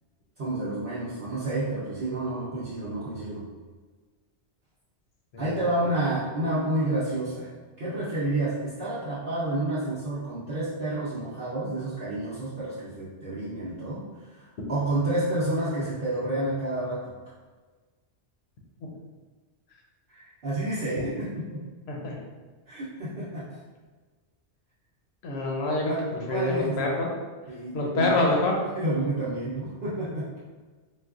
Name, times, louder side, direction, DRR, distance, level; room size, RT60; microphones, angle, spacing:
voice 1, 0.4-3.4 5.4-7.5 7.8-17.1 20.1-21.6 22.7-23.6 25.9-26.9 27.5-28.2 28.7-30.3, right 1 dB, 55° right, -10 dB, 0.8 m, -30 dB
voice 2, 21.9-22.2 25.2-25.9 26.3-27.1 27.7-28.6, left 2 dB, 70° left, -1 dB, 0.9 m, -26 dB
3.9 x 2.3 x 2.4 m, 1.4 s
omnidirectional pair, 1.2 m